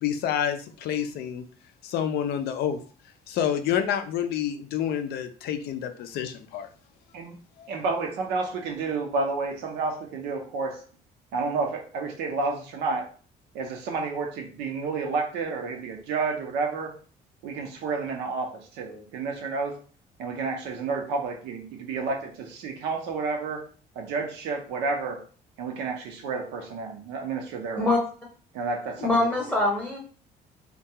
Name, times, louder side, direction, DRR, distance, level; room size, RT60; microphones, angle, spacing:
voice 1, 0.0-1.4 1.8-2.8 3.3-6.7 7.6-7.7, left 9 dB, 70° left, 8 dB, 0.4 m, -28 dB
voice 2, 7.7-10.8 11.3-13.1 13.5-16.9 17.4-19.8 20.2-23.7 23.9-25.2 25.6-27.9 28.5-29.2, right 4 dB, 90° right, 2 dB, 0.7 m, -30 dB
voice 3, 29.0-30.0, left 2 dB, 10° left, -2 dB, 0.8 m, -23 dB
2.3 x 2.3 x 2.8 m, 0.40 s
cardioid pair, 110°, 17 cm